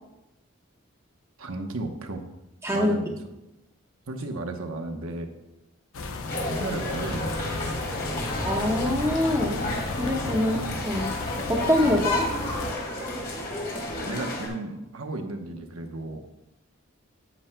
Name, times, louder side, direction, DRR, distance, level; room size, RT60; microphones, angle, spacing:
voice 1, 1.4-2.2 2.7-3.1 4.1-5.3 6.4-7.5 14.0-16.2, right 2 dB, 85° right, 5 dB, 0.9 m, -34 dB
voice 2, 2.6-2.9 8.4-11.1 11.5-12.3, left 1 dB, 15° right, 0 dB, 1.1 m, -25 dB
sound 1, 5.9-12.7, left 3 dB, 90° left, 0.7 m, -34 dB
sound 2, 6.3-14.5, left 1 dB, 45° left, 2.4 m, -31 dB
10.0 x 9.0 x 2.2 m, 0.95 s
head